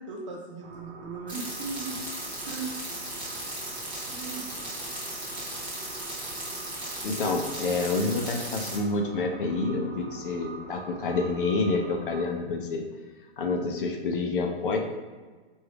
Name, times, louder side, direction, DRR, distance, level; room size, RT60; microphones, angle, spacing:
voice 1, 0.0-2.0 2.4-2.8 3.6-3.8 4.1-4.7, right 4 dB, 30° right, -2 dB, 0.5 m, -38 dB
sound 1, 0.6-12.3, right 4 dB, 80° right, 0.9 m, -45 dB
sound 2, 1.3-8.8, right 1 dB, 5° right, 0.8 m, -36 dB
voice 2, 7.0-12.9 13.4-14.8, left 3 dB, 55° left, 3 dB, 0.6 m, -28 dB
4.6 x 2.6 x 3.3 m, 1.4 s
hypercardioid pair, 175°, 32 cm